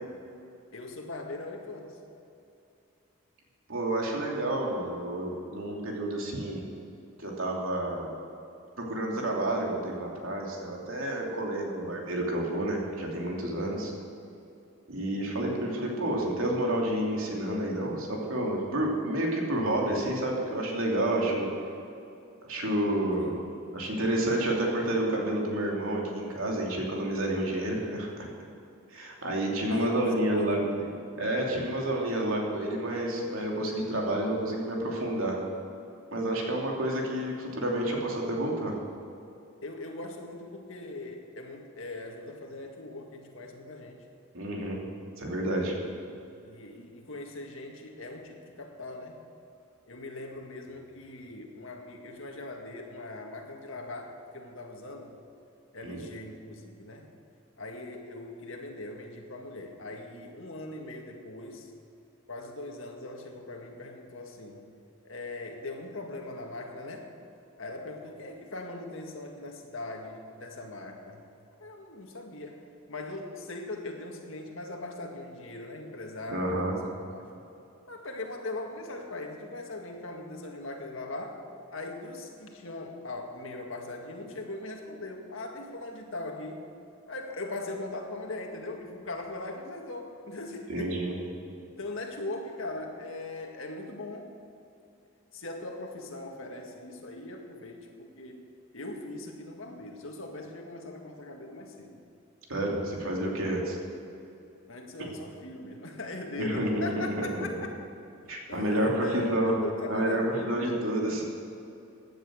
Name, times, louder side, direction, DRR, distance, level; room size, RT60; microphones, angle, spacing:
voice 1, 0.7-2.0 23.2-23.5 29.7-30.9 36.3-36.5 39.6-44.1 45.8-46.0 46.4-49.2 49.9-55.2 55.7-57.1 57.6-61.7 62.3-64.6 65.0-67.1 67.6-71.2 71.6-77.3 77.9-81.4 81.7-86.6 87.1-91.0 91.7-94.3 95.3-98.4 98.7-102.0 104.7-107.8 108.2-110.7, left 2 dB, 65° left, 2 dB, 1.9 m, -40 dB
voice 2, 3.7-6.6 7.2-8.1 8.8-13.9 14.9-21.5 22.5-23.3 23.7-28.3 28.9-30.6 31.2-35.4 36.1-38.7 44.3-44.8 45.2-45.7 55.8-56.0 76.3-76.7 90.7-91.2 102.5-103.8 105.0-105.1 106.4-107.6 108.3-109.5 109.9-111.2, right 1 dB, 75° right, -1 dB, 2.9 m, -29 dB
16.0 x 10.5 x 6.4 m, 2.7 s
head